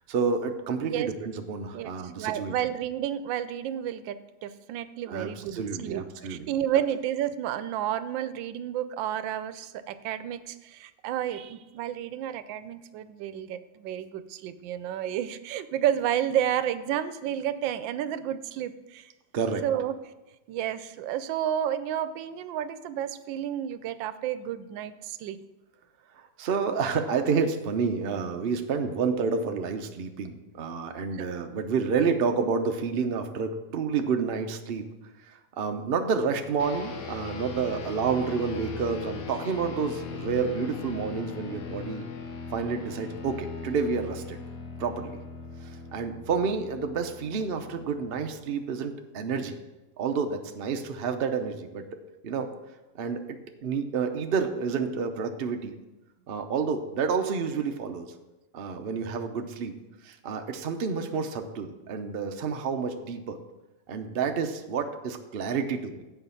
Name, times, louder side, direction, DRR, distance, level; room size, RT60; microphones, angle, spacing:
voice 1, 0.1-2.5 5.1-6.5 19.3-19.6 26.4-34.9 35.3-42.1 42.5-44.4 44.8-45.2 45.6-49.6 50.0-51.8 52.2-52.5 52.9-55.8 56.3-58.1 58.5-59.7 60.0-63.4 63.9-65.9, right 5 dB, 65° right, 5 dB, 0.5 m, -29 dB
voice 2, 1.7-19.1 19.6-20.0 20.5-25.4 31.1-31.3, right 10 dB, 85° right, 13 dB, 1.3 m, -31 dB
sound 1, 36.6-48.3, left 5 dB, 70° left, 1.6 m, -39 dB
7.8 x 5.1 x 6.9 m, 1.1 s
omnidirectional pair, 2.0 m